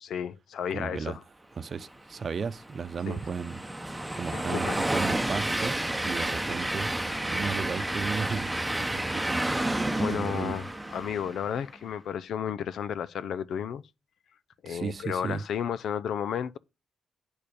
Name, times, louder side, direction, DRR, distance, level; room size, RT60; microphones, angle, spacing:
voice 1, 0.0-1.2 3.1-3.2 4.3-4.8 10.0-10.7 10.9-13.8 14.6-16.6, left 8 dB, 75° left, 0.5 m, -32 dB
voice 2, 0.7-1.2 1.6-3.6 4.1-5.7 6.0-7.0 7.2-8.5 8.8-9.4 9.9-10.5 14.7-15.4, right 5 dB, 50° right, 0.8 m, -34 dB
Train, 2.2-11.6, right 1 dB, 10° right, 0.9 m, -30 dB
8.8 x 6.7 x 5.2 m
cardioid pair, 85°, 0 cm